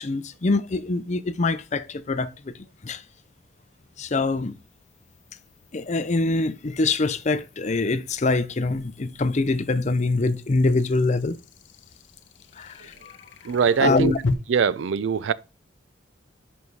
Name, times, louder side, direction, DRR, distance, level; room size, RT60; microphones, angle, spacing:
voice 1, 0.0-2.5 2.8-3.0 4.0-4.6 5.7-11.4 12.6-13.1 13.8-14.2, left 3 dB, 40° left, 0.5 m, -24 dB
sound 1, 0.7-0.8 4.2-14.3, left 3 dB, 80° left, 0.7 m, -39 dB
voice 2, 13.4-14.1 14.5-15.3, right 6 dB, 85° right, 0.4 m, -22 dB
5.4 x 5.2 x 4.6 m
head